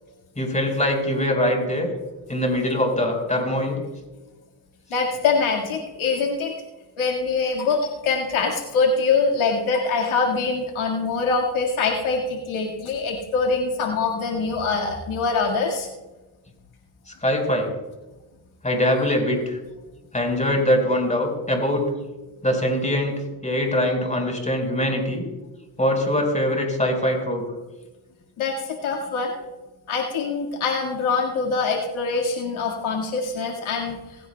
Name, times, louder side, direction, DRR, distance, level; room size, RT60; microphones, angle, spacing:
voice 1, 0.4-1.9 2.3-3.8 17.1-17.7 18.6-19.6 20.1-21.9 22.4-25.2 25.8-27.4, left 1 dB, 15° left, 2 dB, 4.7 m, -23 dB
voice 2, 4.9-6.5 7.0-15.9 28.4-29.3 29.9-34.0, left 4 dB, 70° left, 0 dB, 2.0 m, -24 dB
19.0 x 16.0 x 2.3 m, 1.1 s
cardioid pair, 70°, 49 cm